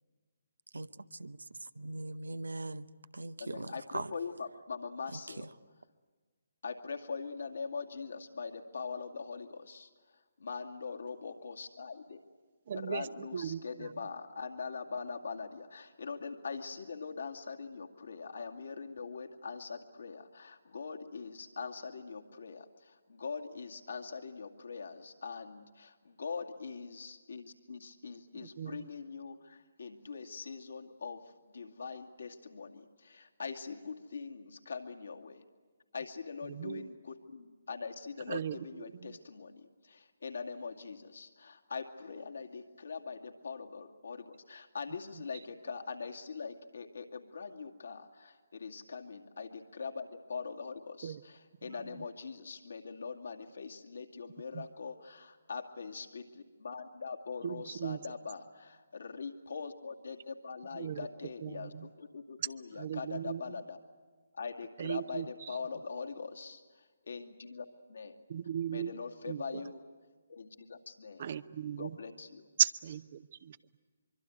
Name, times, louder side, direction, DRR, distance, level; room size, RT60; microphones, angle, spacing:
voice 1, 0.7-2.9 3.1-4.1 5.1-5.5, right 2 dB, 80° right, 15 dB, 0.8 m, -41 dB
voice 2, 3.4-5.5 6.6-9.9 10.4-12.2 12.7-35.4 35.9-63.8 64.3-68.2 68.7-69.8 70.3-71.3 71.8-72.5, left 5 dB, 70° left, 3 dB, 2.3 m, -42 dB
voice 3, 12.7-13.9 28.3-28.9 36.5-36.9 38.3-39.2 51.0-51.2 51.7-52.0 54.5-54.7 57.4-58.1 60.7-61.1 61.4-61.9 62.4-62.5 62.7-63.5 64.8-65.5 68.3-68.9 69.3-69.6 71.2-72.0 72.6-73.6, right 8 dB, 45° right, 14 dB, 0.9 m, -37 dB
24.5 x 24.5 x 9.5 m, 1.4 s
figure-of-eight pair, 140°, 0 cm